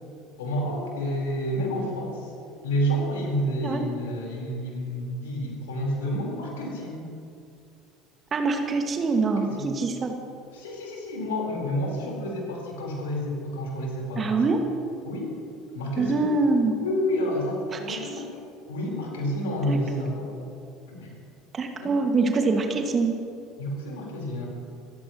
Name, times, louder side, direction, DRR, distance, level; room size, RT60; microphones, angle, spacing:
voice 1, 0.4-2.3 2.6-7.1 9.2-9.7 10.5-14.4 15.0-15.3 15.7-16.3 16.8-18.3 18.7-20.4 20.9-21.2 21.8-22.0 23.6-24.5, equal, 70° left, -1 dB, 4.3 m, -29 dB
voice 2, 8.3-10.2 14.2-14.6 16.0-16.7 17.7-18.1 19.7-19.8 21.5-23.1, right 3 dB, 30° right, 4 dB, 2.0 m, -24 dB
28.0 x 15.0 x 3.1 m, 2.5 s
figure-of-eight pair, 65°, 0 cm